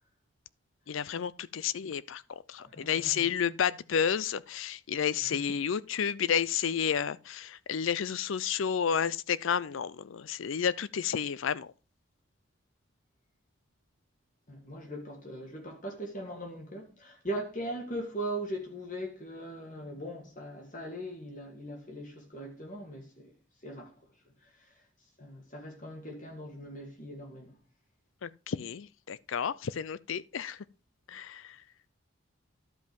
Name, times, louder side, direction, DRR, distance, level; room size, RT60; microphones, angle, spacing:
voice 1, 0.9-11.7 28.2-30.6 31.1-31.6, left 7 dB, 75° left, 0.4 m, -31 dB
voice 2, 2.6-3.2 5.3-5.4 14.5-23.3 23.6-24.0 24.4-24.8 25.2-27.6, right 1 dB, 40° left, 2.4 m, -40 dB
11.5 x 5.2 x 5.2 m
head